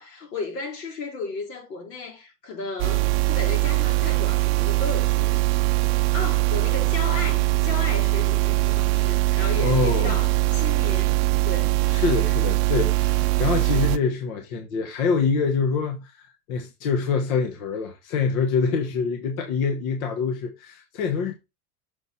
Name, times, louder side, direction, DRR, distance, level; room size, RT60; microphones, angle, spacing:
voice 1, 0.0-5.6 6.1-11.2 11.4-11.8, left 3 dB, 85° left, 3.4 m, -34 dB
sound 1, 2.8-14.0, right 19 dB, 40° right, 0.5 m, -22 dB
voice 2, 9.6-10.2 11.9-21.3, left 5 dB, 60° left, 1.3 m, -25 dB
6.7 x 4.2 x 4.2 m
supercardioid pair, 135°, 47 cm